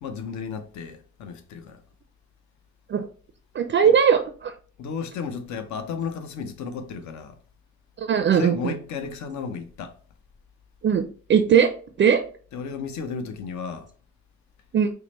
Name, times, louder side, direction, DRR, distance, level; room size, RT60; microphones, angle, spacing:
voice 1, 0.0-1.8 3.8-3.9 4.8-7.4 8.3-10.0 12.5-13.9, left 6 dB, 70° left, 0.7 m, -33 dB
voice 2, 3.5-4.5 8.0-8.7 10.8-11.0 11.3-11.7 12.0-12.2 14.7-14.9, right 7 dB, 40° right, 0.4 m, -19 dB
4.6 x 2.1 x 3.0 m
cardioid pair, 90°, 30 cm